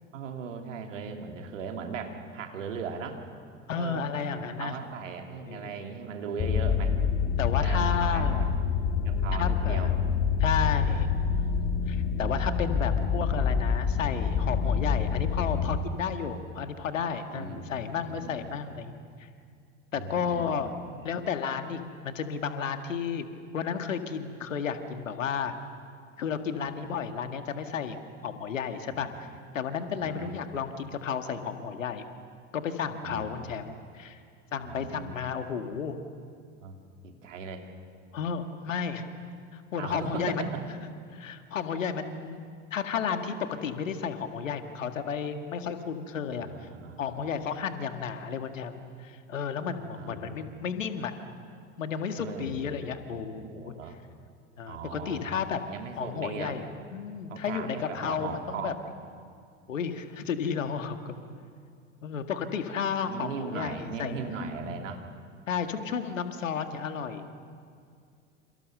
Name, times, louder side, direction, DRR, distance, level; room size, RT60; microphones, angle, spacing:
voice 1, 0.1-3.2 3.7-7.0 7.6-8.5 8.9-9.9 17.3-18.6 19.9-20.5 20.8-21.2 26.6-26.7 28.9-29.3 30.0-30.4 33.0-33.3 34.6-35.1 36.6-37.7 39.8-40.6 46.5-47.2 50.0-50.5 52.2-54.0 54.7-55.3 55.7-56.6 57.3-58.9 63.1-65.0, right 5 dB, 75° right, 4 dB, 3.0 m, -39 dB
voice 2, 3.7-4.7 5.5-5.7 7.4-8.5 9.4-10.0 10.4-11.1 11.4-18.9 19.9-20.7 21.0-23.3 23.5-25.6 26.2-28.0 28.2-29.3 29.5-32.1 32.5-34.2 34.5-36.0 38.1-39.1 39.5-40.5 41.1-42.4 42.7-43.3 43.6-46.5 47.0-51.1 51.8-53.7 54.6-55.6 56.0-56.7 56.9-58.7 59.7-61.1 62.0-64.8 65.5-67.4, left 6 dB, 80° left, 7 dB, 1.9 m, -32 dB
sound 1, 6.4-15.8, left 6 dB, 35° left, 2.0 m, -27 dB
28.5 x 28.0 x 6.7 m, 2.3 s
figure-of-eight pair, 75°, 38 cm